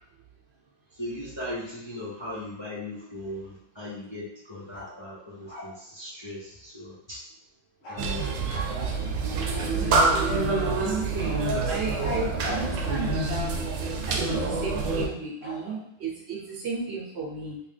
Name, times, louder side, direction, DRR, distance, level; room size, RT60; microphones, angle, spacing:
voice 1, 1.0-7.2 7.9-8.4, left 1 dB, 30° left, -7 dB, 0.6 m, -38 dB
sound 1, 4.7-5.8 7.8-8.1 8.5-9.2 11.2-12.7 15.4-15.7, equal, 85° left, 1.4 m, -42 dB
sound 2, 8.0-15.1, right 3 dB, 85° right, 1.0 m, -26 dB
voice 2, 10.1-10.5 10.8-13.6 14.1-17.6, right 3 dB, 65° right, -2 dB, 1.0 m, -34 dB
3.2 x 2.8 x 3.2 m, 0.74 s
omnidirectional pair, 1.3 m